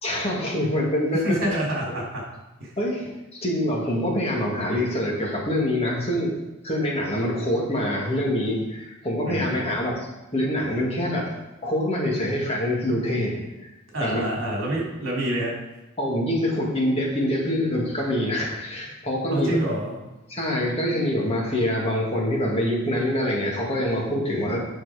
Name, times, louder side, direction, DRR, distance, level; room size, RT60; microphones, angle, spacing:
voice 1, 0.0-1.5 2.8-6.4 6.6-11.3 11.6-13.4 14.0-14.2 16.0-19.6 20.3-24.6, left 1 dB, 30° left, -3 dB, 2.1 m, -25 dB
voice 2, 1.1-2.2 2.6-2.7 9.3-9.7 13.9-15.5 19.3-20.0, right 1 dB, 65° right, -3 dB, 3.3 m, -27 dB
9.1 x 6.0 x 5.0 m, 1.0 s
head